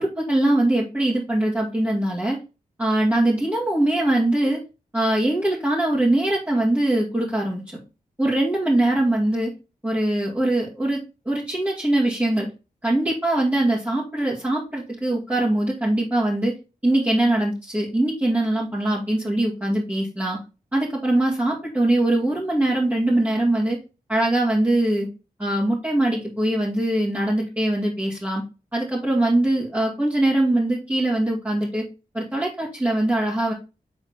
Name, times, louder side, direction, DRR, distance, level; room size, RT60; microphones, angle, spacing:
voice 1, 0.0-2.4 2.8-4.6 4.9-7.8 8.2-9.5 9.8-11.0 11.3-12.5 12.8-16.5 16.8-20.4 20.7-23.8 24.1-25.1 25.4-28.4 28.7-31.8 32.1-33.5, right 1 dB, 10° right, -6 dB, 2.3 m, -22 dB
6.7 x 3.9 x 3.6 m, 0.30 s
cardioid pair, 55°, 15 cm